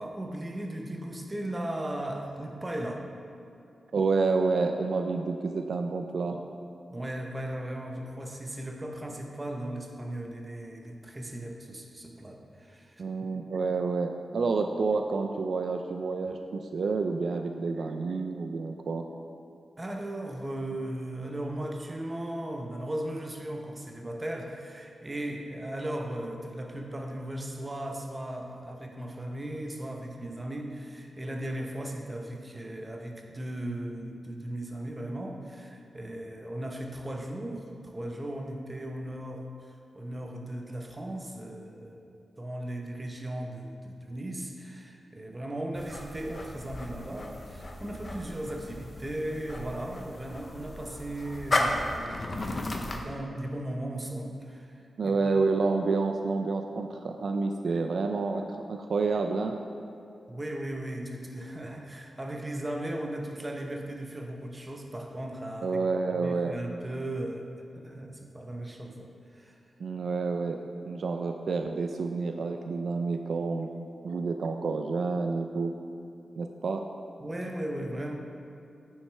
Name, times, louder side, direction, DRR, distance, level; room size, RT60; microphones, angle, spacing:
voice 1, 0.0-3.1 6.9-13.0 19.8-39.5 39.9-42.0 42.4-54.7 55.0-55.4 60.3-65.8 66.2-69.6 77.2-78.1, right 1 dB, 20° right, 2 dB, 0.8 m, -37 dB
voice 2, 3.9-6.4 13.0-19.1 55.0-59.6 65.6-66.6 69.8-70.6 70.9-73.7 74.0-75.7 76.4-76.8, right 4 dB, 70° right, 5 dB, 0.3 m, -29 dB
sound 1, 45.7-53.1, left 2 dB, 35° left, 0.7 m, -34 dB
9.2 x 6.4 x 3.3 m, 2.5 s
wide cardioid pair, 105°, 0 cm